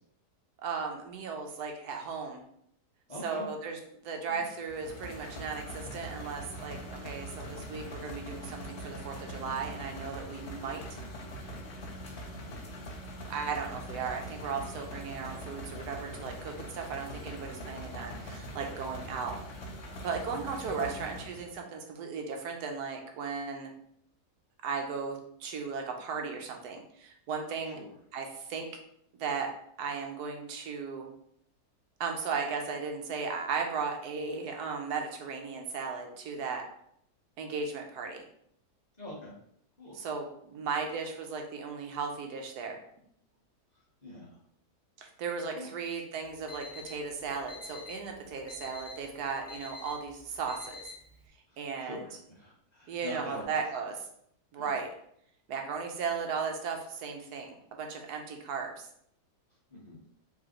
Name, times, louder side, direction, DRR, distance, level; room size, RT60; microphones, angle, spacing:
voice 1, 0.6-2.4 3.2-3.8 4.0-11.0 13.3-19.4 20.0-23.7 24.6-27.8 28.1-28.7 29.2-29.5 29.8-31.1 32.0-36.6 37.4-38.2 39.9-42.8 45.0-50.9 51.6-52.0 52.9-54.1 54.5-54.9 55.5-58.9, right 5 dB, 80° right, 3 dB, 1.2 m, -36 dB
voice 2, 3.1-3.5 4.3-4.4 20.8-21.0 27.6-27.9 39.0-39.3 39.8-40.0 43.7-44.4 45.5-45.7 51.5-53.6 54.5-54.8 59.7-60.0, left 1 dB, 30° left, -6 dB, 1.1 m, -45 dB
sound 1, 4.7-21.5, equal, 50° left, 0.9 m, -42 dB
Alarm, 46.2-51.3, left 4 dB, 70° left, 0.4 m, -48 dB
4.8 x 3.4 x 3.0 m, 0.69 s
omnidirectional pair, 1.7 m